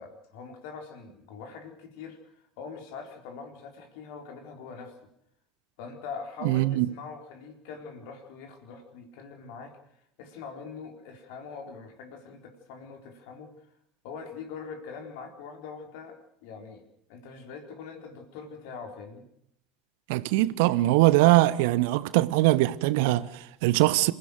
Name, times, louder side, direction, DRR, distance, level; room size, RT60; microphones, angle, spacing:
voice 1, 0.0-2.2 2.6-5.0 5.8-9.8 10.2-13.5 14.0-16.8 17.1-19.3, left 5 dB, 60° left, 4.1 m, -43 dB
voice 2, 6.4-6.9 20.1-24.1, right 18 dB, 60° right, 1.0 m, -22 dB
27.5 x 16.0 x 6.5 m
figure-of-eight pair, 70°, 0 cm